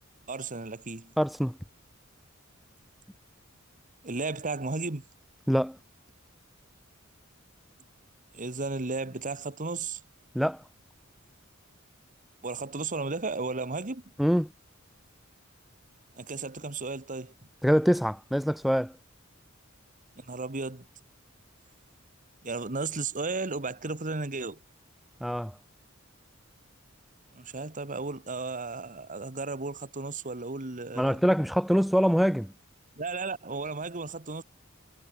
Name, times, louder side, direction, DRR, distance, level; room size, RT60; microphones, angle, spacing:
voice 1, 0.3-1.1 4.0-5.0 8.3-10.0 12.4-14.0 16.2-17.3 20.2-20.9 22.4-24.6 27.3-31.2 33.0-34.4, right 3 dB, 40° right, 1.7 m, -34 dB
voice 2, 1.2-1.6 5.5-5.8 10.3-10.6 14.2-14.5 17.6-18.9 25.2-25.5 31.0-32.5, equal, ahead, 1.1 m, -24 dB
head